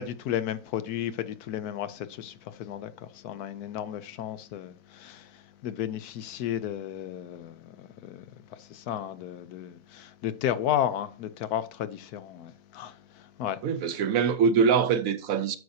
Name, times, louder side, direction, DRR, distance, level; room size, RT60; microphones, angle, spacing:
voice 1, 0.0-8.2 8.5-13.6, left 10 dB, 75° left, 1.1 m, -33 dB
voice 2, 13.6-15.6, right 6 dB, 70° right, 1.0 m, -23 dB
9.5 x 6.1 x 2.7 m
omnidirectional pair, 1.7 m